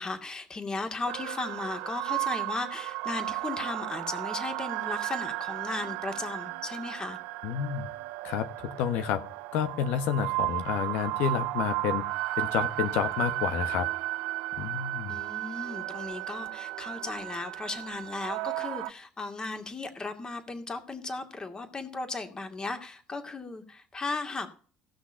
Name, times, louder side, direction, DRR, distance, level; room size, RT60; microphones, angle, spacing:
voice 1, 0.0-7.2 15.1-24.5, left 3 dB, 25° left, 2.3 m, -36 dB
sound 1, 1.1-18.9, right 18 dB, 75° right, 0.5 m, -34 dB
voice 2, 7.4-7.9 8.2-9.2 9.5-12.0 12.4-13.9 14.6-15.1, left 8 dB, 70° left, 1.2 m, -29 dB
16.0 x 6.2 x 5.6 m
hypercardioid pair, 65°, 3 cm